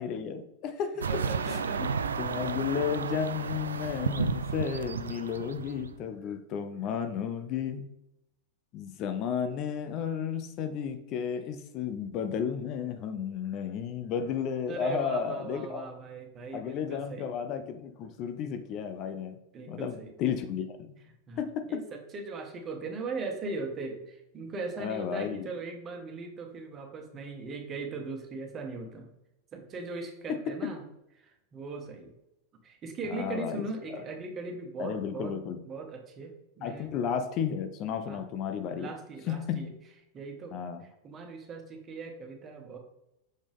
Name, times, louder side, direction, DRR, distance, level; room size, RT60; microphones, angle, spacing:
voice 1, 0.0-1.2 2.2-7.8 8.7-15.9 16.5-19.4 19.7-20.9 21.4-21.8 24.8-25.5 30.3-30.7 33.1-33.6 33.9-34.0 34.8-35.6 36.6-38.9 39.3-39.7 40.5-40.8, left 7 dB, 45° left, 8 dB, 0.6 m, -33 dB
sound 1, 1.0-6.1, right 6 dB, 85° right, 0.3 m, -32 dB
voice 2, 1.1-2.4 14.7-17.3 19.5-20.1 21.3-21.4 21.7-29.1 29.5-30.8 31.2-32.1 32.6-35.4 35.6-36.9 38.1-38.2 38.8-39.7 40.1-40.5 41.0-42.8, right 3 dB, 30° right, 3 dB, 1.6 m, -39 dB
6.5 x 5.0 x 3.6 m, 0.87 s
hypercardioid pair, 95°, 0 cm